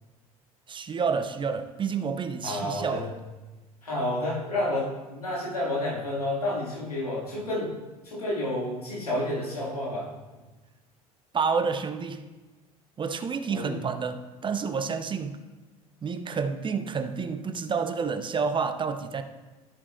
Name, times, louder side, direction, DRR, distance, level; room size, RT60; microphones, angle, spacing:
voice 1, 0.7-3.1 11.3-12.2 13.0-15.4 16.0-19.2, right 5 dB, 25° right, 8 dB, 0.8 m, -29 dB
voice 2, 2.4-3.0 3.8-7.7 8.0-10.1 13.5-13.8, left 1 dB, 85° left, -5 dB, 2.5 m, -30 dB
13.5 x 8.4 x 2.6 m, 1.2 s
figure-of-eight pair, 65°, 19 cm